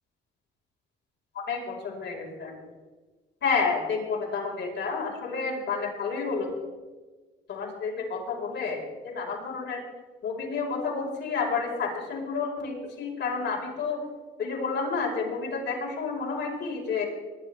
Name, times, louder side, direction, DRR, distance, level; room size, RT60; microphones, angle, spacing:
voice 1, 1.3-2.5 3.4-6.5 7.5-9.8 10.2-14.0 14.4-17.0, left 5 dB, 60° left, -1 dB, 4.7 m, -30 dB
21.5 x 11.5 x 3.4 m, 1.3 s
cardioid pair, 90°, 20 cm